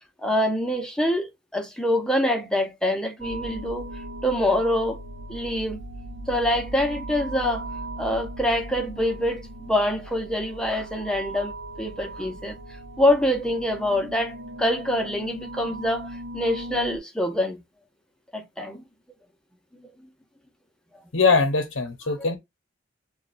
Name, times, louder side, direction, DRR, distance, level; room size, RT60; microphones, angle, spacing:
voice 1, 0.2-3.8 4.2-5.0 5.3-5.8 6.3-7.6 8.0-11.5 11.8-12.5 13.0-16.1 16.3-17.6 18.3-18.8, left 1 dB, 5° left, 0.7 m, -25 dB
sound 1, 3.2-17.0, right 1 dB, 60° right, 0.8 m, -38 dB
voice 2, 21.1-22.4, left 4 dB, 80° left, 0.9 m, -21 dB
7.0 x 2.4 x 2.5 m
head